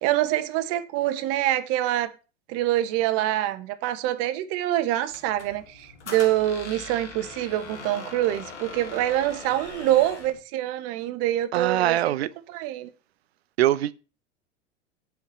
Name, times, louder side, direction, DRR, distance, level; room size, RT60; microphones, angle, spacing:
voice 1, 0.0-2.1 2.5-12.2 12.5-12.9, right 13 dB, 45° right, 1.2 m, -25 dB
Squeak, 5.1-10.4, left 4 dB, 75° left, 1.9 m, -41 dB
voice 2, 11.5-12.3 13.6-13.9, right 13 dB, 60° right, 0.7 m, -22 dB
8.3 x 5.0 x 7.1 m
figure-of-eight pair, 80°, 35 cm